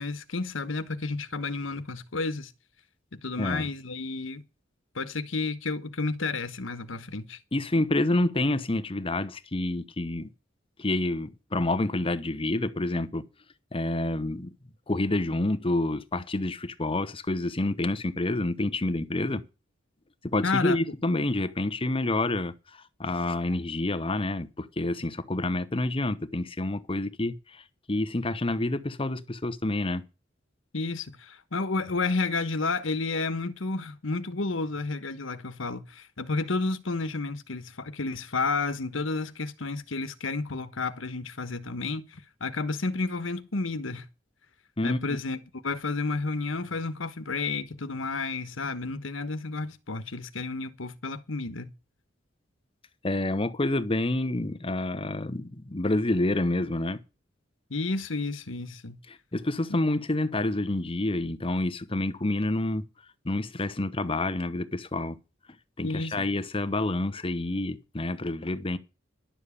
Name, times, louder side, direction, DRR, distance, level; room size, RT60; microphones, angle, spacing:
voice 1, 0.0-2.5 3.1-4.4 4.9-7.4 20.4-20.8 30.7-44.1 44.8-45.4 45.6-51.7 57.7-59.0 65.8-66.3, left 3 dB, 90° left, 1.2 m, -31 dB
voice 2, 3.4-3.7 7.5-10.3 10.8-13.3 13.7-14.5 14.9-19.4 20.2-22.5 23.0-27.6 27.9-30.0 44.8-45.0 53.0-57.0 59.1-62.8 63.2-65.2 65.8-68.8, left 2 dB, 30° left, 1.0 m, -28 dB
11.5 x 7.3 x 8.5 m
head